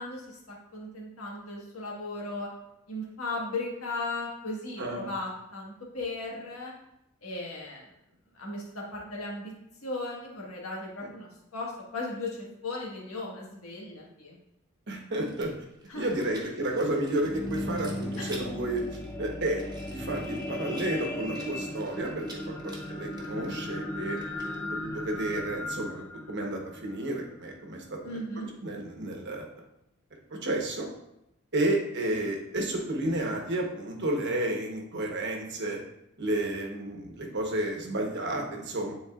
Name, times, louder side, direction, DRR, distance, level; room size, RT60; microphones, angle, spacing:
voice 1, 0.0-2.5 2.9-6.7 7.2-7.9 8.3-9.5 9.8-14.4 15.9-16.1 18.2-18.3 28.0-28.5, left 2 dB, 80° left, -3 dB, 1.6 m, -36 dB
voice 2, 14.9-15.5 15.9-18.8 19.2-19.6 19.9-24.2 24.7-28.2 28.6-29.4 30.3-30.9 31.5-35.8 36.2-38.9, right 1 dB, 55° right, 1 dB, 1.1 m, -31 dB
Rattle, 15.3-24.9, right 2 dB, 20° right, 1.0 m, -50 dB
sound 1, 17.1-27.5 28.1-28.2, left 1 dB, 10° left, 0.4 m, -37 dB
9.6 x 4.0 x 2.4 m, 0.85 s
head